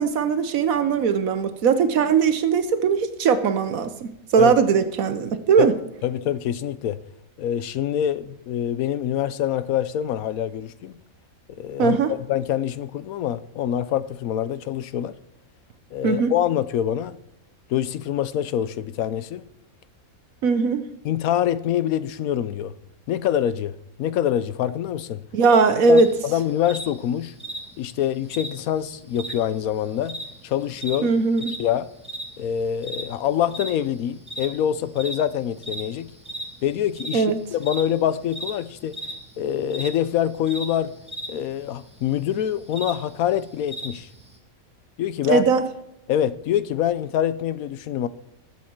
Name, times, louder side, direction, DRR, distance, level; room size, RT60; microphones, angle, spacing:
voice 1, 0.0-5.7 11.8-12.1 16.0-16.3 20.4-20.8 25.3-26.1 31.0-31.5 37.1-37.4 45.2-45.6, right 5 dB, 75° right, 1.3 m, -19 dB
voice 2, 6.0-7.0 7.4-11.0 11.6-12.0 12.3-15.1 15.9-17.2 17.7-19.4 21.0-22.7 23.1-25.2 25.9-27.3 27.8-30.2 30.4-31.1 31.6-31.9 32.4-36.1 36.6-37.3 37.5-39.0 39.4-40.9 41.3-44.1 45.0-45.4 46.1-48.1, left 10 dB, 80° left, 1.1 m, -25 dB
sound 1, 26.0-44.4, right 1 dB, 5° right, 1.7 m, -38 dB
20.0 x 7.5 x 4.5 m
omnidirectional pair, 1.5 m